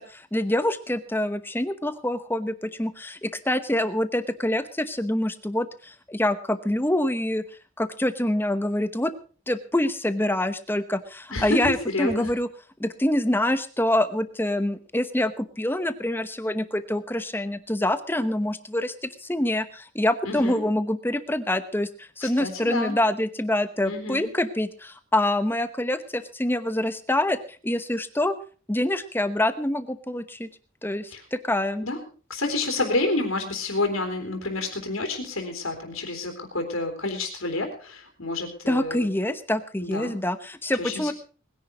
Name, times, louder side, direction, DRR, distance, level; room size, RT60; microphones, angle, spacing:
voice 1, 0.0-7.4 7.8-9.1 9.5-12.5 12.8-27.4 27.6-28.4 28.7-30.5 30.8-31.8 38.7-41.1, left 1 dB, 10° left, 12 dB, 0.9 m, -26 dB
voice 2, 11.3-12.3 20.2-20.6 22.2-23.0 23.9-24.3 31.1-31.2 31.8-32.0 32.3-39.1 39.8-40.2 40.8-41.1, left 2 dB, 80° left, 2 dB, 3.5 m, -29 dB
20.0 x 10.5 x 5.1 m, 0.40 s
head